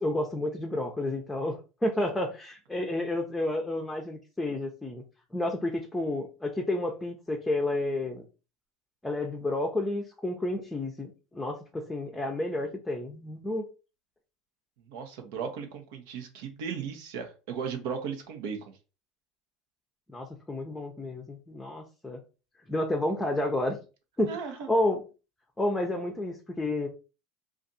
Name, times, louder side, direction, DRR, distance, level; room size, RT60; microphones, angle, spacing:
voice 1, 0.0-5.0 5.3-8.2 9.0-13.7 20.1-22.2 22.7-23.8 24.2-24.4 24.7-25.0 25.6-26.9, left 1 dB, 10° left, 2 dB, 0.7 m, -30 dB
voice 2, 14.8-18.6 24.3-24.7, right 6 dB, 75° right, 5 dB, 0.9 m, -36 dB
2.5 x 2.5 x 4.1 m, 0.32 s
supercardioid pair, 100°, 0 cm